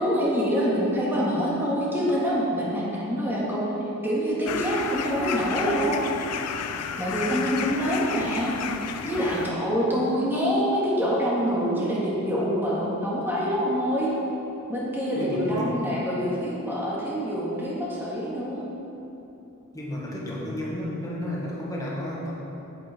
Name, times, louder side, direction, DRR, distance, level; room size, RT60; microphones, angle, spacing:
voice 1, 0.0-3.7 4.0-6.0 7.0-8.6 9.0-14.1 14.7-18.7, equal, 10° right, -7 dB, 1.9 m, -25 dB
sound 1, 4.5-9.5, left 7 dB, 80° left, 0.4 m, -32 dB
voice 2, 15.1-15.9 19.7-22.3, left 1 dB, 15° left, -5 dB, 1.7 m, -32 dB
7.9 x 7.3 x 5.0 m, 3.0 s
head